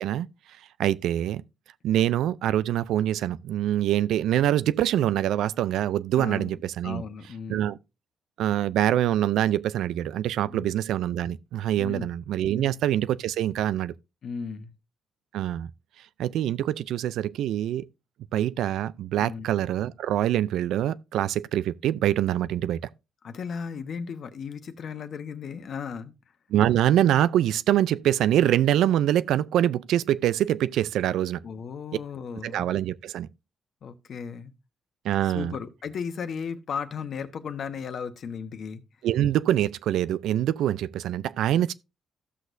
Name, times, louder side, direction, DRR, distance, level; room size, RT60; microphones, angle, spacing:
voice 1, 0.8-1.4 1.8-7.0 7.5-7.8 8.4-13.9 15.3-15.7 16.2-17.9 18.3-22.8 26.5-31.4 32.4-33.3 35.0-35.6 39.0-41.7, right 12 dB, 80° right, 0.4 m, -24 dB
voice 2, 6.2-6.6 6.8-7.7 10.5-10.7 11.8-12.1 12.5-12.8 14.2-14.7 19.2-19.5 23.2-26.1 31.4-32.7 33.8-34.5 35.2-38.8, left 6 dB, 55° left, 1.1 m, -35 dB
14.5 x 6.2 x 2.6 m
cardioid pair, 90°, 0 cm